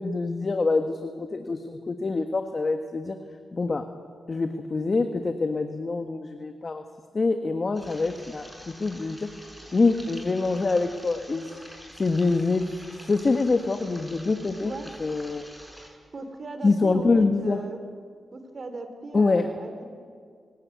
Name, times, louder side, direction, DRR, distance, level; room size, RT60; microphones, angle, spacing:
voice 1, 0.0-3.2 3.5-3.8 4.3-6.8 7.1-9.3 9.7-11.5 12.0-12.7 13.1-14.7 15.0-15.5 16.6-17.6 19.1-19.5, left 3 dB, 40° left, 6 dB, 1.5 m, -25 dB
sound 1, 7.8-15.9, equal, 5° right, 6.9 m, -46 dB
voice 2, 14.6-14.9 16.1-17.8 18.3-19.9, right 3 dB, 50° right, 8 dB, 3.6 m, -38 dB
29.0 x 17.0 x 9.5 m, 2.1 s
cardioid pair, 75°, 0 cm